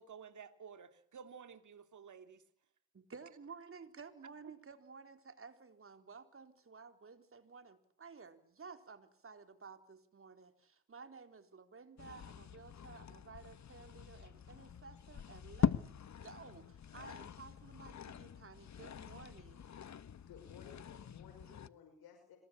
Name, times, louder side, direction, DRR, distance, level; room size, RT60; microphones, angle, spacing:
voice 1, 0.0-2.4, right 6 dB, 55° right, 9 dB, 3.1 m, -53 dB
voice 2, 2.9-19.6, right 5 dB, 35° right, 8 dB, 4.0 m, -54 dB
sound 1, 12.0-21.7, left 8 dB, 50° left, 1.4 m, -42 dB
voice 3, 20.2-22.4, left 7 dB, 85° left, 5 dB, 6.0 m, -57 dB
26.5 x 21.5 x 8.7 m, 0.64 s
cardioid pair, 75°, 36 cm